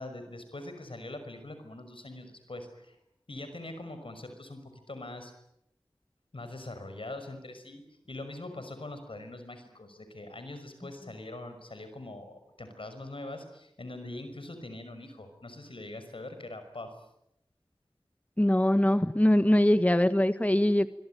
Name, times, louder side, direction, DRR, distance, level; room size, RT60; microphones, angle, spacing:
voice 1, 0.0-3.0 3.3-5.3 6.3-16.9, left 2 dB, 80° left, 8 dB, 5.9 m, -43 dB
voice 2, 18.4-20.9, left 1 dB, 15° left, 11 dB, 1.3 m, -22 dB
26.0 x 24.0 x 9.2 m, 0.81 s
wide cardioid pair, 40°, 9 cm